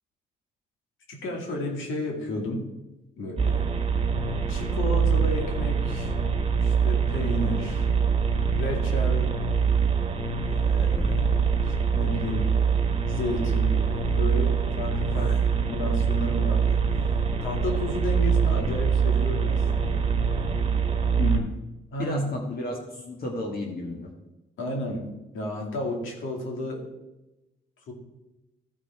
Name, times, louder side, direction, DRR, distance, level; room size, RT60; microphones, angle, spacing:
voice 1, 1.1-2.7 3.2-3.7 4.5-6.1 6.6-7.9 8.5-9.3 10.7-11.3 11.9-12.5 13.1-15.3 15.7-16.8 17.4-20.1 21.9-22.2 24.6-25.0 25.3-26.8 27.9-28.0, left 1 dB, 80° left, 0 dB, 2.5 m, -32 dB
sound 1, 3.4-21.4, right 6 dB, 30° right, 1.4 m, -24 dB
voice 2, 21.2-21.5 22.0-24.1, left 2 dB, 50° left, 0 dB, 1.6 m, -32 dB
14.0 x 5.1 x 4.5 m, 1.0 s
cardioid pair, 90°, 20 cm